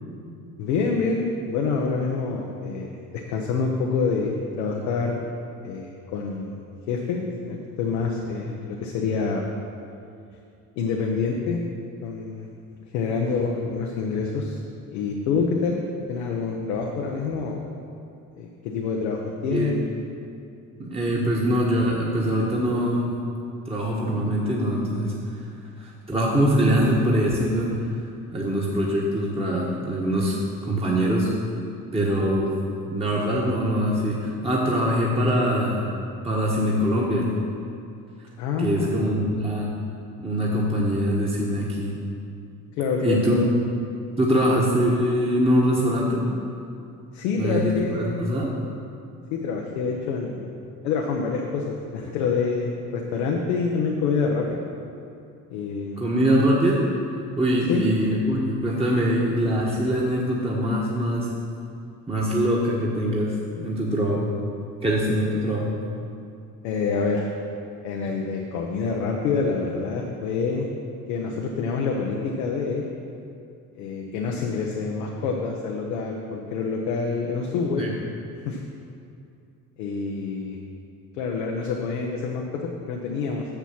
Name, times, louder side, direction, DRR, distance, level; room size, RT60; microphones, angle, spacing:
voice 1, 0.6-2.9 3.3-5.2 5.6-6.6 6.9-9.4 10.8-11.6 12.0-12.5 12.9-14.6 14.9-15.8 16.1-17.6 18.4-19.8 38.4-39.0 42.8-43.5 47.1-48.2 49.3-50.4 50.8-54.6 55.5-56.0 57.7-57.9 66.6-67.3 67.8-70.7 71.1-72.8 73.8-77.9 78.4-78.6 79.8-80.6 81.2-83.6, left 4 dB, 80° left, 0 dB, 0.9 m, -26 dB
voice 2, 20.8-23.2 23.7-25.1 25.8-27.8 28.3-30.4 30.6-31.3 31.9-32.5 32.9-35.9 36.2-37.3 38.6-39.7 40.2-42.0 43.0-43.4 44.2-46.3 47.4-48.5 56.0-56.8 57.4-61.3 62.1-64.3 64.8-65.8 77.8-77.9, equal, 10° right, -4 dB, 1.4 m, -23 dB
6.9 x 6.9 x 5.8 m, 2.5 s
hypercardioid pair, 60°, 48 cm